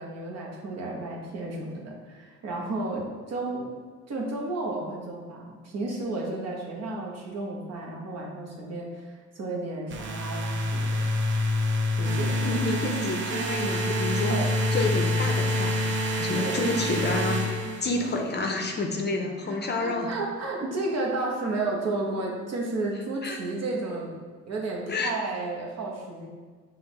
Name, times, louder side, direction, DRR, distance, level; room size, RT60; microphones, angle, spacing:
voice 1, 0.0-3.7 4.1-11.0 11.9-12.5 14.3-14.5 16.4-16.6 19.4-24.1 24.5-26.3, right 2 dB, 60° right, -2 dB, 1.1 m, -32 dB
sound 1, 9.9-18.2, left 1 dB, 40° right, 0.5 m, -27 dB
voice 2, 12.4-14.4 14.7-17.5 17.8-20.1 23.2-23.4 24.9-25.1, left 2 dB, 35° left, 3 dB, 0.5 m, -29 dB
6.2 x 2.5 x 3.0 m, 1.5 s
cardioid pair, 90°, 30 cm